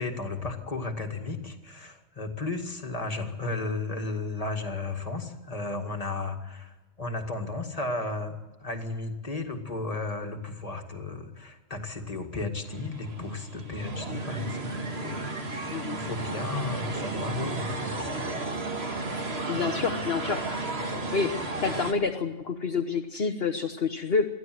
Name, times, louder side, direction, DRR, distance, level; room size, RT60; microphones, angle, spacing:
voice 1, 0.0-18.3, left 3 dB, 30° left, 4 dB, 2.2 m, -34 dB
sound 1, 12.6-21.9, right 2 dB, 50° right, 2.2 m, -33 dB
voice 2, 19.5-20.4 21.1-21.3 21.6-24.3, left 5 dB, 50° left, 5 dB, 1.3 m, -28 dB
23.0 x 15.0 x 7.8 m, 1.1 s
omnidirectional pair, 1.4 m